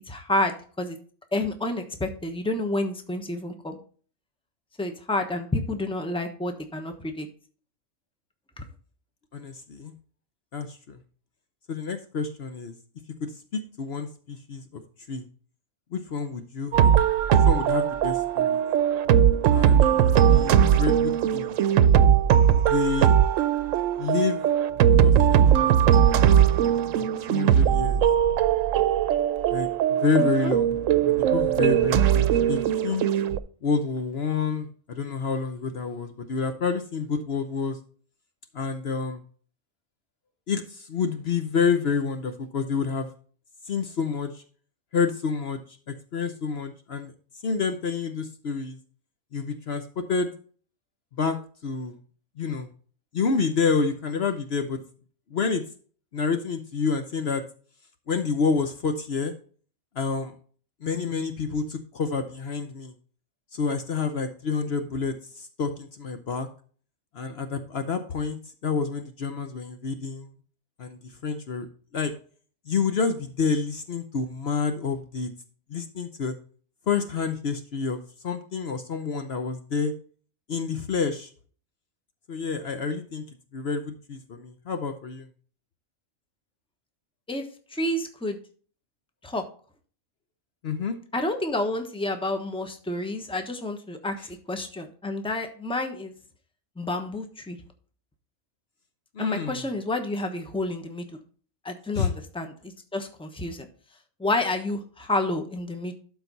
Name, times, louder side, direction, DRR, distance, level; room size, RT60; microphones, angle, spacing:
voice 1, 0.1-1.0 1.3-3.8 4.8-7.3 8.6-8.7 30.2-30.6 87.3-87.4 87.7-88.4 89.2-89.5 91.1-96.1 96.8-97.6 99.2-101.2 101.6-103.7 104.2-106.0, left 2 dB, 5° left, 5 dB, 1.0 m, -29 dB
voice 2, 9.3-9.9 10.5-11.0 11.7-12.7 13.2-14.8 15.1-15.2 15.9-16.9 17.3-18.6 19.5-19.9 20.1-21.5 22.6-23.2 24.0-24.4 25.0-26.3 27.0-28.0 29.5-30.8 31.1-33.0 33.6-37.8 38.5-39.2 40.5-43.1 43.6-44.4 44.9-45.6 45.9-47.1 47.4-48.8 49.3-50.3 51.1-52.0 52.4-52.7 53.1-54.8 55.3-55.6 56.1-57.4 58.1-59.3 59.9-60.4 60.8-62.9 63.5-66.5 67.1-70.3 70.8-71.7 71.9-72.1 72.7-75.3 75.7-76.3 76.9-79.9 80.5-81.3 82.3-83.2 83.5-85.3 90.6-91.0 94.2-94.3 99.1-99.7 101.9-102.1, left 5 dB, 55° left, 8 dB, 1.0 m, -28 dB
sound 1, 16.7-33.4, right 9 dB, 80° right, 1.0 m, -20 dB
12.0 x 4.6 x 4.0 m, 0.42 s
omnidirectional pair, 1.3 m